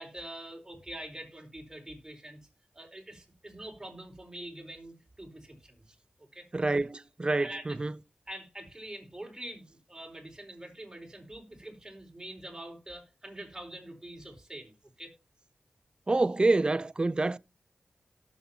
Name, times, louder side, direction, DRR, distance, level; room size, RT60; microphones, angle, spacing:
voice 1, 0.0-2.4 2.7-5.8 6.2-6.5 7.4-7.8 8.3-15.1, right 1 dB, 20° right, 4.4 m, -45 dB
voice 2, 6.5-7.9 16.1-17.4, right 2 dB, 35° right, 0.6 m, -27 dB
17.5 x 7.4 x 2.8 m
cardioid pair, 45°, 3 cm